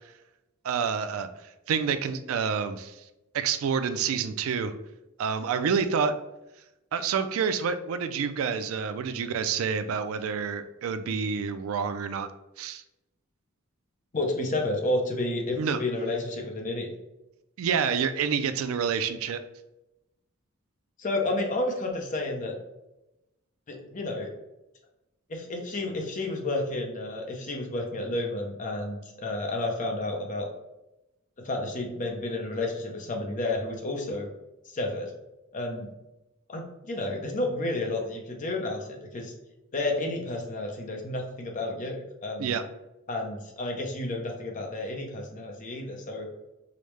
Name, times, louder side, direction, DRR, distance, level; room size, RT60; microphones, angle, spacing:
voice 1, 0.6-1.3 1.7-2.9 3.3-4.7 5.2-6.1 6.9-12.3 12.6-12.8 15.6-15.8 17.6-19.4 42.4-42.6, right 6 dB, 75° right, 10 dB, 0.3 m, -28 dB
voice 2, 14.1-16.9 21.0-22.5 23.7-24.3 25.3-30.5 31.4-34.3 34.7-35.1 35.5-35.9 36.5-39.3 39.7-42.6 43.1-46.3, left 2 dB, 35° left, 2 dB, 0.6 m, -31 dB
4.9 x 2.1 x 3.1 m, 0.94 s
head